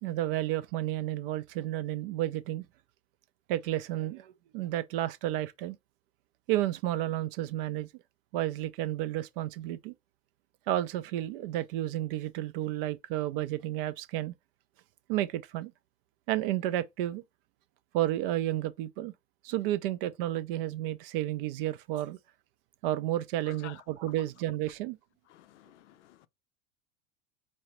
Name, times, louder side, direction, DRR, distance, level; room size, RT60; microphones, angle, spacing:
voice 1, 0.0-2.6 3.5-5.8 6.5-7.9 8.3-9.9 10.7-14.3 15.1-15.7 16.3-17.2 17.9-19.1 19.4-22.2 22.8-25.0, right 13 dB, 45° right, 0.5 m, -31 dB
voice 2, 23.5-23.8 25.3-26.3, left 13 dB, 65° left, 0.5 m, -51 dB
4.6 x 2.1 x 4.3 m
figure-of-eight pair, 80°, 38 cm